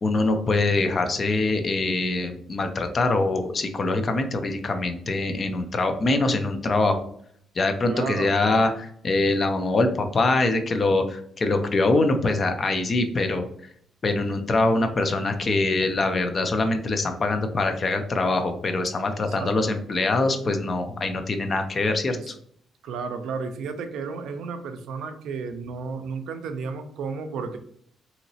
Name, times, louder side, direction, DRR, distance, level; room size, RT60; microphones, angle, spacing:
voice 1, 0.0-7.0 7.6-13.5 14.0-22.3, left 2 dB, 40° left, 6 dB, 0.5 m, -24 dB
voice 2, 7.9-8.6 19.1-19.8 22.1-22.3 22.8-27.6, right 5 dB, 80° right, 7 dB, 0.4 m, -33 dB
2.9 x 2.8 x 2.7 m, 0.65 s
cardioid pair, 90°, 0 cm